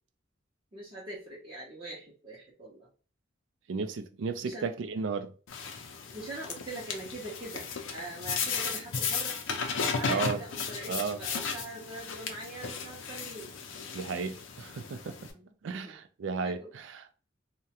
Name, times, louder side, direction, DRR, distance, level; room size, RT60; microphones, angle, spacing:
voice 1, 0.7-2.9 4.4-4.7 6.1-9.4 9.9-13.5 15.3-16.0 16.4-16.7, right 1 dB, 25° right, 0.6 m, -43 dB
voice 2, 3.7-5.3 10.1-10.4 10.9-11.2 13.9-15.3 15.6-17.1, right 5 dB, 75° right, 0.4 m, -34 dB
sound 1, 5.5-15.3, left 5 dB, 85° left, 0.5 m, -35 dB
2.3 x 2.1 x 2.7 m
head